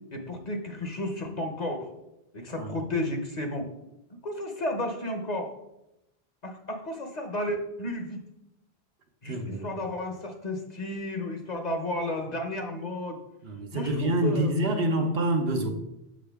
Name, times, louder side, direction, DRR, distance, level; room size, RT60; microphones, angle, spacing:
voice 1, 0.1-1.9 2.3-3.7 4.1-5.5 6.4-8.2 9.2-13.2 13.7-14.5, left 1 dB, 45° left, 4 dB, 0.9 m, -32 dB
voice 2, 9.3-9.8 13.4-15.7, right 1 dB, 65° right, 4 dB, 1.0 m, -27 dB
6.4 x 6.3 x 3.5 m, 0.86 s
omnidirectional pair, 1.1 m